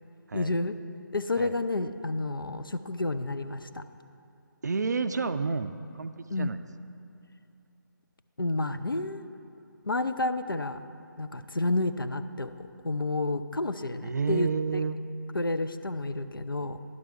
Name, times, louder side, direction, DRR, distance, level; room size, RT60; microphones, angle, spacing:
voice 1, 0.3-0.7 1.1-3.8 6.3-6.6 8.4-9.3 9.8-10.8 11.2-14.8 15.3-16.8, left 2 dB, 85° left, 10 dB, 0.4 m, -30 dB
voice 2, 4.6-6.6 14.0-15.0, right 4 dB, 55° right, 11 dB, 0.3 m, -30 dB
11.0 x 4.6 x 6.0 m, 2.7 s
figure-of-eight pair, 155°, 11 cm